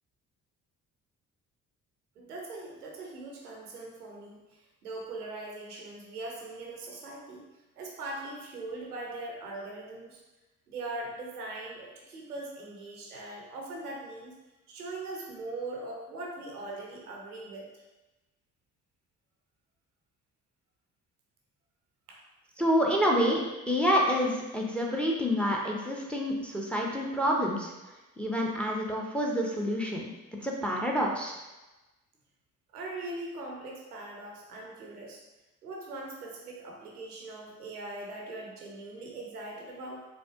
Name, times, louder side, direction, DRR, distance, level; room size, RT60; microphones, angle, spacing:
voice 1, 2.2-7.5 7.7-10.2 10.7-14.3 14.7-17.7 22.1-22.2 32.7-35.2 35.6-40.1, right 2 dB, 90° right, -1 dB, 0.6 m, -41 dB
voice 2, 22.6-27.7 28.2-30.1 30.4-31.4, equal, 5° left, -1 dB, 0.6 m, -28 dB
4.1 x 2.4 x 2.8 m, 1.1 s
figure-of-eight pair, 40°, 44 cm